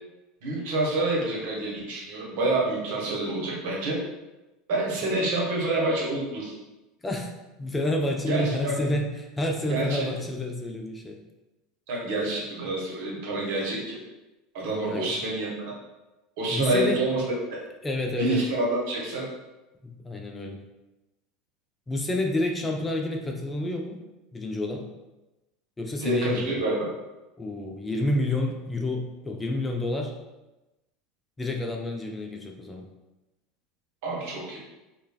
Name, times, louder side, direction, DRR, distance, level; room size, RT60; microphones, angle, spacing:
voice 1, 0.4-4.0 4.7-6.5 8.3-8.8 9.7-10.1 11.9-14.0 14.5-15.5 16.4-17.2 18.2-19.3 26.0-26.9 34.0-34.6, right 2 dB, 60° right, -4 dB, 0.9 m, -27 dB
voice 2, 7.6-11.2 14.9-15.1 16.5-17.0 17.8-18.4 19.8-20.6 21.9-24.0 24.3-24.9 25.8-26.6 27.4-30.1 31.4-32.9, left 1 dB, 15° left, 1 dB, 0.4 m, -29 dB
3.1 x 2.2 x 2.2 m, 1.0 s
figure-of-eight pair, 75°, 0 cm